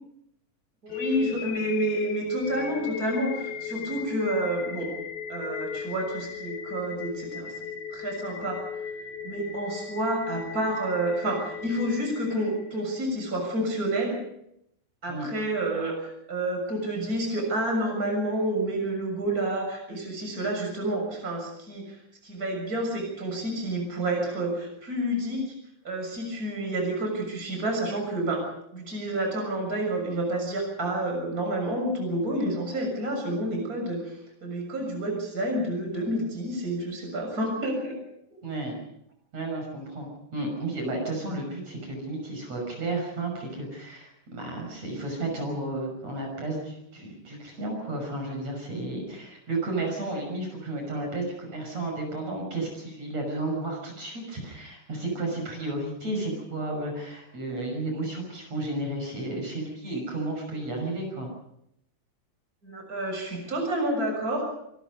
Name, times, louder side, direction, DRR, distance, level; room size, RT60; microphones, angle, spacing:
voice 1, 0.8-4.9 5.3-8.7 9.2-14.2 15.0-22.0 22.2-25.5 25.8-28.4 28.7-38.0 62.6-64.5, right 1 dB, 25° right, 2 dB, 7.1 m, -29 dB
sound 1, 0.9-12.9, left 7 dB, 85° left, 3.3 m, -36 dB
voice 2, 38.4-38.8 39.3-61.3, right 2 dB, 50° right, 1 dB, 7.2 m, -32 dB
26.0 x 23.0 x 5.3 m, 0.76 s
omnidirectional pair, 3.9 m